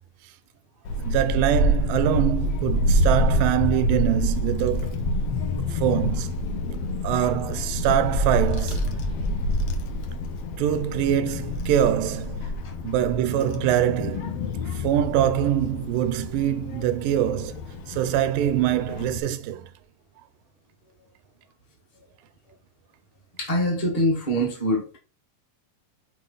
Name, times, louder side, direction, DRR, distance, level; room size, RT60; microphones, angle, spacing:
Child speech kid speaking / Wind, 0.8-19.2, left 1 dB, 85° left, 1.3 m, -27 dB
voice 1, 1.0-5.0 5.7-6.5 7.0-9.0 10.6-12.6 12.8-14.3 14.7-17.6 17.9-19.7, right 11 dB, 90° right, 2.3 m, -24 dB
voice 2, 23.4-25.0, equal, 35° left, 0.6 m, -24 dB
6.2 x 4.3 x 3.9 m
omnidirectional pair, 3.8 m